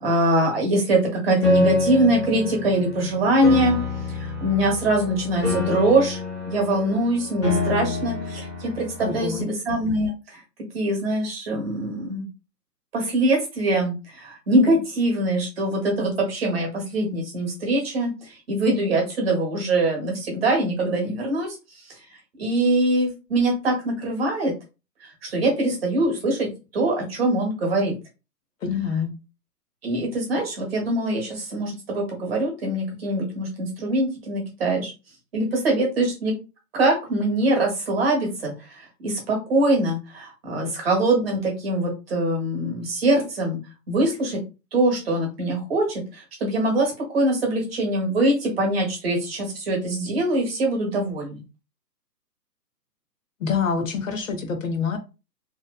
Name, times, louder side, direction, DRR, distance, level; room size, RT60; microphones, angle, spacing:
voice 1, 0.0-3.8 4.2-6.2 6.5-10.1 10.7-12.3 12.9-18.1 18.5-21.6 22.4-24.5 25.2-27.9 29.8-34.9 35.3-36.3 36.7-43.6 43.9-44.4 44.7-51.4, right 1 dB, 35° right, 1.0 m, -23 dB
Piano, 1.4-9.4, left 3 dB, 15° left, 0.7 m, -27 dB
voice 2, 9.0-9.5 28.6-29.1 53.4-55.0, left 6 dB, 55° left, 0.5 m, -26 dB
2.7 x 2.0 x 2.2 m
hypercardioid pair, 155°, 50 cm